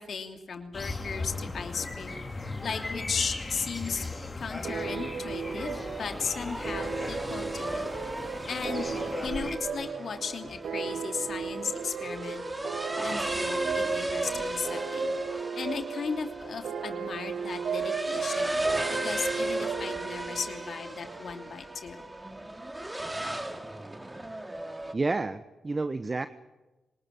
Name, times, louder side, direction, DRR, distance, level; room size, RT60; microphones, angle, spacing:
voice 1, 0.0-7.8 8.5-8.9 9.2-12.4 13.0-18.6 18.9-22.0, left 5 dB, 65° left, 5 dB, 2.9 m, -36 dB
sound 1, 0.7-9.6, left 2 dB, 30° left, 3.4 m, -37 dB
sound 2, 4.6-21.7, right 7 dB, 75° right, 1.1 m, -36 dB
sound 3, 5.5-24.9, right 1 dB, 20° right, 2.6 m, -35 dB
voice 2, 24.9-26.3, right 3 dB, 35° right, 11 dB, 1.1 m, -30 dB
25.0 x 20.0 x 9.1 m, 1.1 s
supercardioid pair, 45°, 0 cm